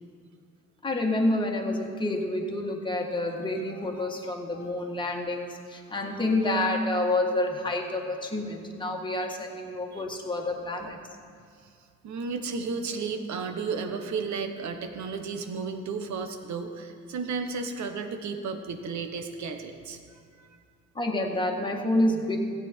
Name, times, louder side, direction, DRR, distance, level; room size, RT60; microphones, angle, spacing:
voice 1, 0.8-11.0 20.9-22.4, left 1 dB, 15° left, 0 dB, 1.7 m, -28 dB
voice 2, 12.0-20.6, right 4 dB, 70° right, 6 dB, 1.2 m, -33 dB
15.0 x 9.0 x 4.5 m, 2.2 s
cardioid pair, 90°, 30 cm